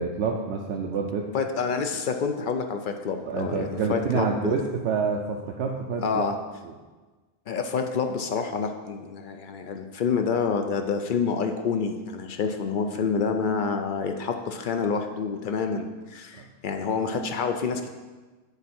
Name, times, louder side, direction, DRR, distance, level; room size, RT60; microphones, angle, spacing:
voice 1, 0.0-1.3 3.3-6.3 6.6-6.7, right 5 dB, 80° right, 0 dB, 0.8 m, -27 dB
voice 2, 1.3-4.5 6.0-6.4 7.5-17.9, left 5 dB, 60° left, 5 dB, 0.6 m, -28 dB
6.9 x 4.5 x 4.3 m, 1.3 s
omnidirectional pair, 1.1 m